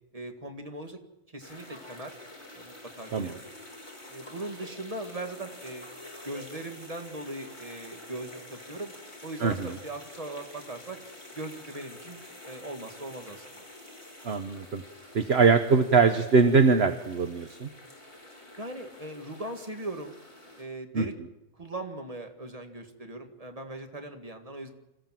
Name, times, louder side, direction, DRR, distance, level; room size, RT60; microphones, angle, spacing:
voice 1, 0.1-1.0 1.3-2.2 2.5-3.5 4.1-5.9 6.2-8.9 9.2-11.0 11.3-12.2 12.4-13.6 18.6-20.2 20.6-21.1 21.5-24.7, right 2 dB, 30° right, 6 dB, 2.0 m, -39 dB
sound 1, 1.4-20.6, left 1 dB, 20° left, 4.0 m, -48 dB
voice 2, 14.2-14.8 15.1-17.7 20.9-21.0, right 5 dB, 55° right, 9 dB, 1.2 m, -22 dB
26.5 x 15.0 x 7.6 m, 0.92 s
omnidirectional pair, 1.4 m